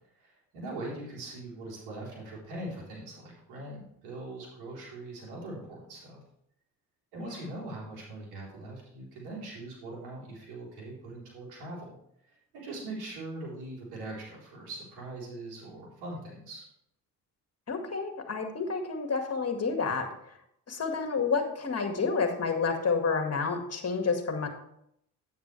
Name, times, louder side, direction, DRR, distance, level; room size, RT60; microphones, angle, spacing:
voice 1, 0.1-6.2 7.1-12.0 12.2-16.6, right 2 dB, 85° right, -4 dB, 4.0 m, -41 dB
voice 2, 7.2-7.5 17.7-20.4 20.7-24.5, left 4 dB, 40° left, 4 dB, 2.0 m, -30 dB
9.4 x 9.2 x 3.3 m, 0.74 s
supercardioid pair, 65°, 38 cm